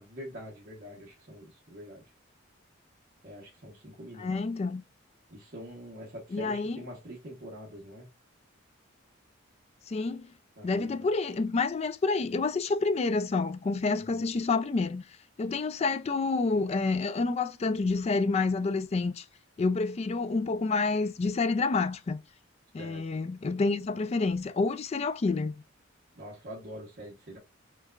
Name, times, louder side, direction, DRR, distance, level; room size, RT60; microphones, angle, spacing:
voice 1, 0.0-2.0 3.2-4.4 5.3-8.1 10.6-11.1 13.9-14.2 22.8-23.2 26.1-27.4, equal, 50° right, 1.0 m, -45 dB
voice 2, 4.2-4.8 6.3-6.8 9.9-10.3 10.6-15.0 15.4-19.2 19.6-22.2 22.7-25.5, left 3 dB, 30° left, 0.3 m, -28 dB
6.2 x 2.2 x 2.4 m
head